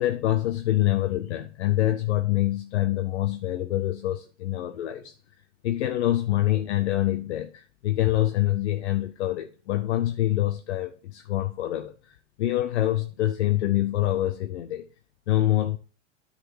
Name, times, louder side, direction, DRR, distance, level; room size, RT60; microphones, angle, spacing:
voice 1, 0.0-5.1 5.6-14.8 15.3-15.8, left 14 dB, 65° left, 0.8 m, -25 dB
10.0 x 4.3 x 4.7 m
hypercardioid pair, 110°, 36 cm